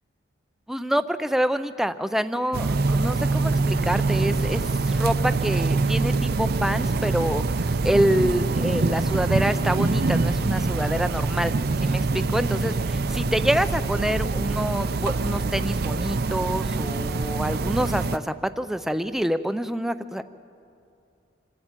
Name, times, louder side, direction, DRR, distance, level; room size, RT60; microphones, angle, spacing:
voice 1, 0.7-11.5 11.8-20.2, equal, ahead, 11 dB, 0.5 m, -27 dB
sound 1, 2.5-18.2, right 3 dB, 50° right, 0.6 m, -24 dB
27.0 x 12.5 x 9.0 m, 2.6 s
head